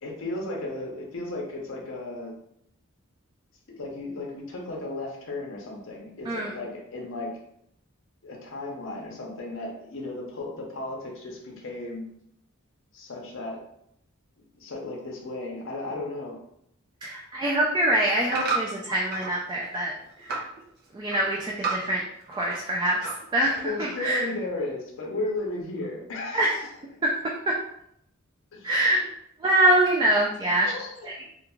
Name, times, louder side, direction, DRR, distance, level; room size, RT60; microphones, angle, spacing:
voice 1, 0.0-2.3 3.7-7.4 8.2-12.1 12.9-13.6 14.6-16.4 23.6-26.7 28.5-28.7 30.6-31.3, left 2 dB, 65° left, -1 dB, 0.6 m, -35 dB
voice 2, 6.2-6.6 17.0-19.9 20.2-20.5 20.9-22.0 22.3-24.3 26.3-26.5 27.0-27.2 27.5-27.6 28.6-29.0 29.4-30.7 31.0-31.1, right 1 dB, 20° right, -3 dB, 0.3 m, -24 dB
sound 1, 17.5-19.4 19.7-20.5 20.8-22.6 22.8-23.4 23.9-24.0, right 4 dB, 50° right, 0.7 m, -32 dB
2.4 x 2.2 x 3.0 m, 0.75 s
head